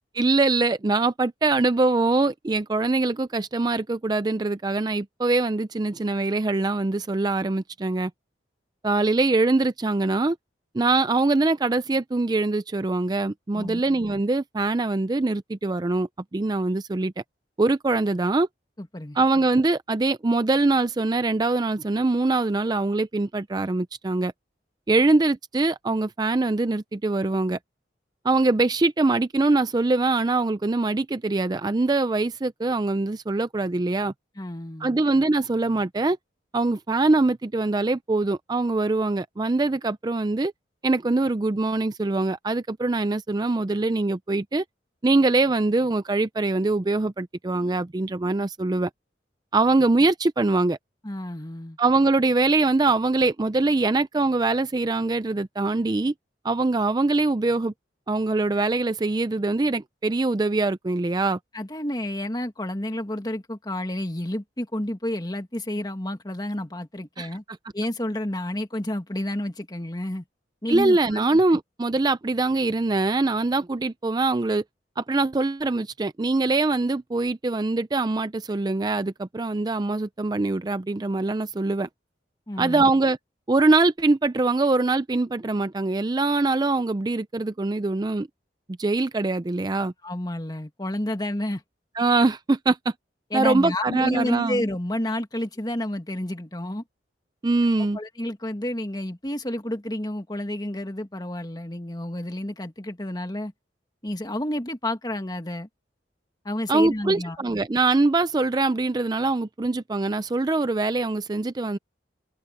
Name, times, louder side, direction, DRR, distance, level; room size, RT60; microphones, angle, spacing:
voice 1, 0.1-8.1 8.8-10.4 10.7-17.1 17.6-18.5 19.1-24.3 24.9-27.6 28.2-34.1 34.8-36.2 36.5-40.5 40.8-44.6 45.0-48.9 49.5-50.8 51.8-56.1 56.4-57.7 58.1-61.4 67.2-67.3 70.7-74.6 75.0-81.9 82.6-83.2 83.5-88.3 88.8-89.9 92.0-92.9 93.3-94.6 97.4-98.0 106.7-111.8, right 3 dB, 25° right, 0.4 m, -23 dB
voice 2, 18.8-19.2 34.4-34.9 51.0-51.8 61.5-67.4 67.7-70.2 70.6-71.2 82.5-82.9 90.0-91.6 93.3-96.8 97.9-103.5 104.0-105.7 106.4-107.4, left 1 dB, 25° left, 2.0 m, -30 dB
head